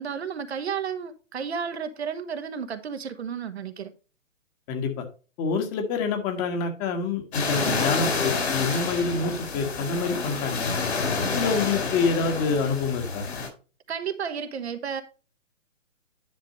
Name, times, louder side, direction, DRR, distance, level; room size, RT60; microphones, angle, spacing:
voice 1, 0.0-3.9 7.6-7.9 13.9-15.0, right 7 dB, 55° right, 1.2 m, -32 dB
voice 2, 4.7-5.1 5.4-10.7 11.2-13.3, left 4 dB, 25° left, 1.8 m, -27 dB
sound 1, 7.3-13.5, left 4 dB, 55° left, 4.2 m, -28 dB
10.5 x 6.5 x 3.0 m
figure-of-eight pair, 130°, 39 cm